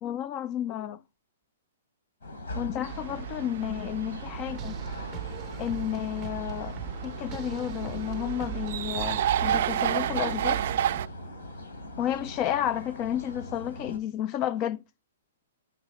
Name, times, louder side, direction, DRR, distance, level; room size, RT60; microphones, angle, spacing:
voice 1, 0.0-1.0 2.6-4.7 5.6-6.8 7.0-10.7 12.0-14.8, left 11 dB, 30° left, 0.3 m, -31 dB
sound 1, 2.2-14.0, left 1 dB, 80° left, 3.6 m, -41 dB
sound 2, 2.8-11.1, right 10 dB, 55° right, 0.3 m, -31 dB
sound 3, 4.5-9.8, right 10 dB, 20° right, 0.7 m, -42 dB
9.8 x 3.6 x 3.2 m
hypercardioid pair, 140°, 0 cm